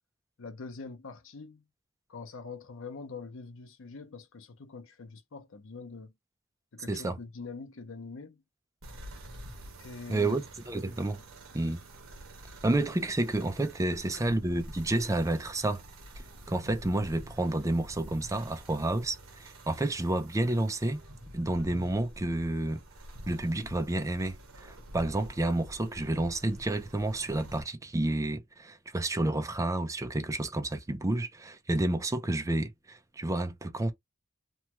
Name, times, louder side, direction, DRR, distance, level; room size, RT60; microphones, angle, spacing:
voice 1, 0.4-1.6 2.1-6.1 6.7-8.4 9.8-10.4 14.1-14.4, left 4 dB, 70° left, 0.7 m, -44 dB
sound 1, 8.8-27.6, right 1 dB, 85° right, 1.1 m, -48 dB
voice 2, 10.1-11.2 11.5-11.8 12.6-15.8 16.5-21.0 21.3-22.8 23.3-33.9, right 1 dB, 15° right, 0.5 m, -30 dB
3.0 x 2.3 x 3.0 m
head